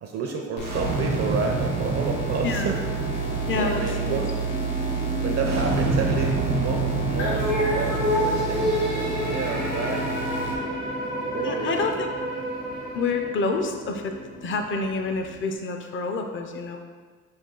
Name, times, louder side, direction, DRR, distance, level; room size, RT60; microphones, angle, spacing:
voice 1, 0.0-2.8 3.5-4.3 5.2-10.1 10.7-11.0 11.3-12.1, right 4 dB, 55° right, 2 dB, 0.5 m, -30 dB
sound 1, 0.6-10.5, right 4 dB, 85° left, 0.8 m, -30 dB
sound 2, 0.6-15.5, right 2 dB, 85° right, 1.1 m, -31 dB
voice 2, 3.5-4.2 11.4-12.1 12.9-14.1 14.4-16.8, left 4 dB, 40° left, 4 dB, 0.5 m, -28 dB
sound 3, 7.2-13.7, equal, 60° left, 1.4 m, -29 dB
5.2 x 2.3 x 3.8 m, 1.5 s
cardioid pair, 90°, 30 cm